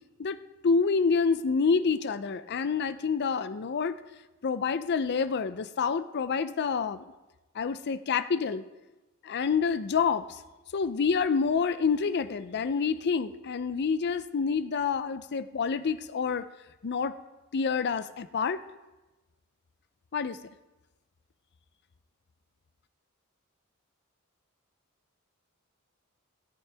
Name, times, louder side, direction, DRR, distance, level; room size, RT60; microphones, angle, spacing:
voice 1, 0.6-4.0 4.4-7.1 7.5-8.6 9.2-10.4 10.7-16.4 16.8-17.1 17.5-18.6 20.1-20.4, left 5 dB, 50° left, 12 dB, 0.5 m, -27 dB
17.5 x 8.5 x 3.4 m, 1.1 s
head